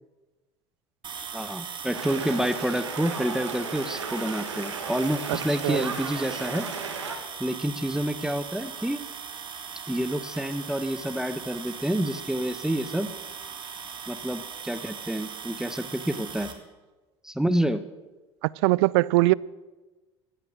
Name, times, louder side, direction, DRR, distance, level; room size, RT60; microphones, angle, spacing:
sound 1, 1.0-16.5, right 6 dB, 30° right, 2.2 m, -39 dB
voice 1, 1.3-6.6 7.4-9.0 9.9-13.1 14.1-16.5 17.2-17.8, right 1 dB, 5° right, 0.9 m, -28 dB
sound 2, 1.9-7.2, right 5 dB, 90° right, 1.7 m, -35 dB
voice 2, 18.4-19.3, right 21 dB, 65° right, 0.4 m, -21 dB
15.5 x 10.0 x 7.4 m
hypercardioid pair, 65°, 15 cm